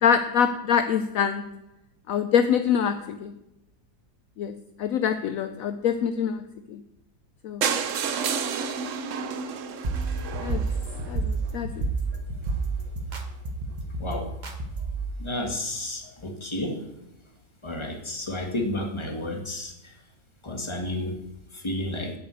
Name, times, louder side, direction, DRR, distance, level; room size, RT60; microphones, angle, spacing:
voice 1, 0.0-1.5 2.1-3.3 4.4-4.5 4.8-6.4 6.7-6.8 7.4-7.6 10.4-10.7 11.1-11.8, left 7 dB, 65° left, 10 dB, 1.0 m, -25 dB
sound 1, 7.6-11.5 12.1-12.2 12.5-12.6 12.9-13.0 13.1-13.2, right 6 dB, 60° right, 1.0 m, -30 dB
sound 2, 9.8-15.1, right 3 dB, 30° right, 1.1 m, -30 dB
voice 2, 14.0-14.3 15.2-16.8 17.6-19.9 20.4-21.1 21.5-22.1, left 1 dB, 20° left, 2 dB, 1.6 m, -31 dB
8.7 x 6.6 x 8.2 m, 0.93 s
omnidirectional pair, 1.7 m